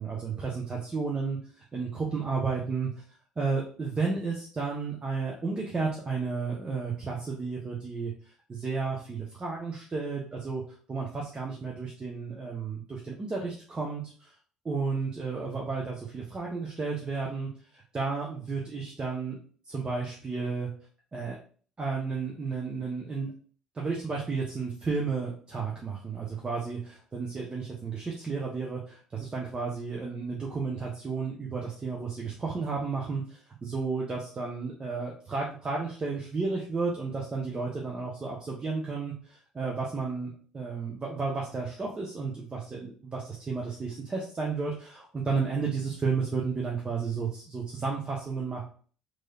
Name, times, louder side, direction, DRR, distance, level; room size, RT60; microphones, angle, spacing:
voice 1, 0.0-2.9 3.4-8.1 8.5-10.6 10.9-14.3 14.6-19.4 19.7-20.7 21.1-21.4 21.8-23.3 23.7-48.6, right 4 dB, 30° right, -2 dB, 0.7 m, -32 dB
3.1 x 2.7 x 2.3 m, 0.43 s
figure-of-eight pair, 55°, 3 cm